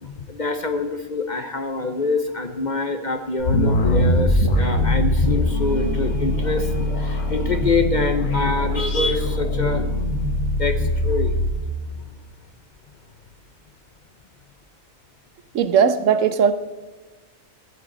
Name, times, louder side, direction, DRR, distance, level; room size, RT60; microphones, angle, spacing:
voice 1, 0.0-10.1 10.5-11.7 11.9-12.0, left 3 dB, 45° left, 7 dB, 0.7 m, -25 dB
sound 1, 3.4-11.6, left 1 dB, 75° left, 1.9 m, -22 dB
voice 2, 15.5-16.5, right 7 dB, 75° right, 12 dB, 1.0 m, -18 dB
14.0 x 10.5 x 3.8 m, 1.3 s
omnidirectional pair, 1.4 m